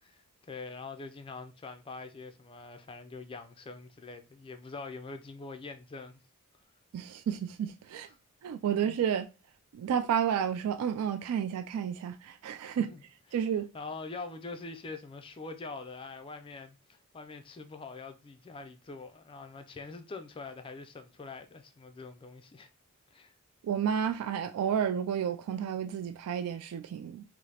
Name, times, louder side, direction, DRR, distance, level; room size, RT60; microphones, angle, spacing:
voice 1, 0.0-6.2 8.0-8.2 8.7-8.8 12.6-13.0 13.3-13.4 13.7-22.7 23.1-23.3, left 3 dB, 25° left, 0.3 m, -44 dB
voice 2, 6.9-8.1 8.4-9.3 9.7-12.9 13.3-13.7 23.6-27.2, right 8 dB, 85° right, 0.3 m, -31 dB
4.8 x 2.0 x 2.8 m
head